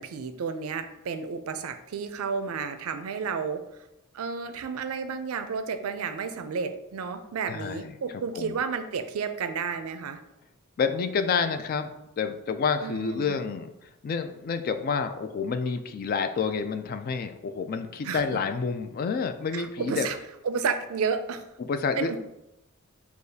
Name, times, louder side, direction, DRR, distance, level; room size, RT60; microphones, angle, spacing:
voice 1, 0.0-3.6 4.1-10.2 12.8-13.4 18.0-18.2 19.5-20.2 20.4-21.4 22.0-22.2, right 5 dB, 75° right, 9 dB, 0.4 m, -31 dB
voice 2, 7.5-7.9 8.3-8.5 10.8-11.9 12.2-20.1 21.6-22.2, left 5 dB, 45° left, 8 dB, 0.3 m, -29 dB
6.4 x 2.4 x 2.7 m, 0.90 s
head